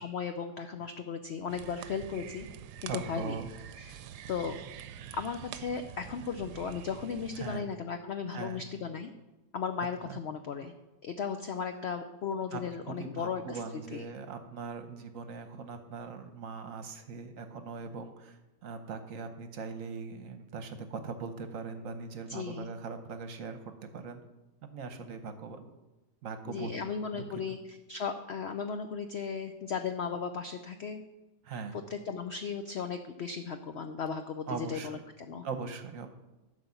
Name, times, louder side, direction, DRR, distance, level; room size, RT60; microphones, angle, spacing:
voice 1, 0.0-2.5 2.8-3.4 3.8-4.0 4.3-4.5 5.1-9.1 9.5-10.7 11.0-13.6 13.9-14.0 22.3-22.7 26.5-27.6 27.9-31.0 31.7-35.4, left 6 dB, 80° left, 7 dB, 0.6 m, -36 dB
sound 1, 1.5-7.6, right 9 dB, 80° right, 1.1 m, -46 dB
voice 2, 2.9-3.5 7.4-7.6 8.3-8.6 10.0-10.2 12.5-24.2 24.6-25.7 26.2-27.4 31.4-31.8 34.5-35.0 35.4-36.1, right 4 dB, 60° right, 8 dB, 1.1 m, -40 dB
11.5 x 5.0 x 7.0 m, 1.1 s
omnidirectional pair, 1.8 m